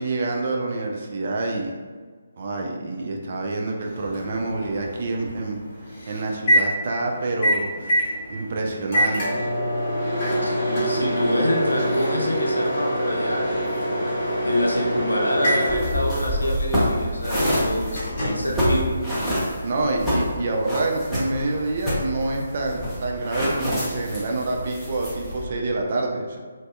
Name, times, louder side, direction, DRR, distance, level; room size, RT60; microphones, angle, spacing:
voice 1, 0.0-1.7 2.4-5.6 6.1-9.4 19.6-26.4, right 2 dB, 45° right, 0 dB, 0.3 m, -27 dB
Microwave oven, 3.8-19.5, equal, 30° left, 0.9 m, -26 dB
voice 2, 10.4-13.9 14.4-18.9, left 1 dB, 80° left, -2 dB, 0.5 m, -26 dB
sound 1, 15.7-25.4, equal, ahead, 0.6 m, -27 dB
2.6 x 2.1 x 2.2 m, 1.5 s
figure-of-eight pair, 145°, 0 cm